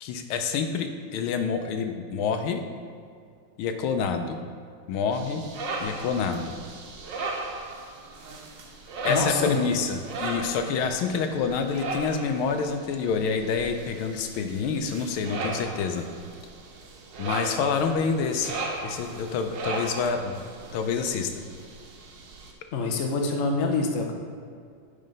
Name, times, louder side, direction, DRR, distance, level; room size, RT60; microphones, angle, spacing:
voice 1, 0.0-2.6 3.6-4.4 4.9-5.4 5.8-6.6 9.0-16.0 17.2-20.4 20.7-21.3, left 5 dB, 85° left, 7 dB, 1.5 m, -27 dB
sound 1, 5.1-22.5, right 3 dB, 65° right, 1.5 m, -37 dB
voice 2, 9.1-9.6 22.7-24.1, left 3 dB, 55° left, 2 dB, 0.9 m, -26 dB
9.3 x 4.2 x 5.1 m, 2.3 s
omnidirectional pair, 2.3 m